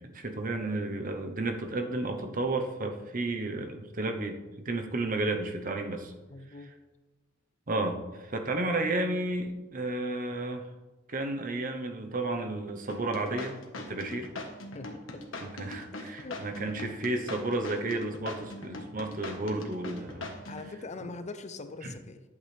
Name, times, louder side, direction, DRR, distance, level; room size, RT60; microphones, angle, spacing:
voice 1, 0.0-6.1 7.7-10.7 11.1-13.6 13.9-14.3 15.4-20.3 21.8-21.9, right 2 dB, 45° right, 5 dB, 1.0 m, -32 dB
voice 2, 6.3-6.7 14.7-15.3 16.0-16.4 16.9-17.0 20.5-22.2, left 3 dB, 35° left, 10 dB, 0.6 m, -42 dB
sound 1, 12.9-20.7, left 2 dB, 80° left, 1.5 m, -40 dB
11.5 x 8.6 x 3.4 m, 1.1 s
head